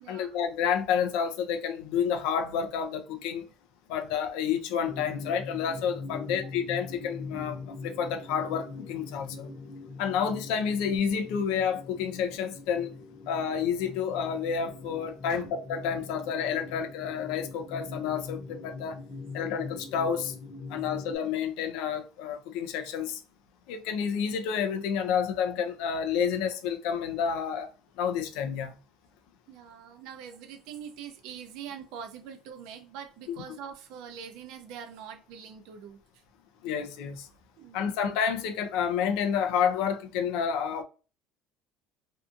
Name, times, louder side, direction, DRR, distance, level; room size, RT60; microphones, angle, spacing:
voice 1, 0.1-3.4 3.9-7.6 7.8-9.5 10.0-12.9 13.3-19.0 19.3-20.3 20.7-23.2 23.7-27.7 28.0-28.7 33.3-33.4 36.6-37.3 37.7-40.8, left 7 dB, 80° left, 0.4 m, -29 dB
sound 1, 4.8-21.2, left 3 dB, 35° left, 0.8 m, -42 dB
voice 2, 29.5-36.0 37.6-38.0, right 8 dB, 70° right, 0.5 m, -43 dB
2.6 x 2.3 x 2.5 m
cardioid pair, 170°, 0 cm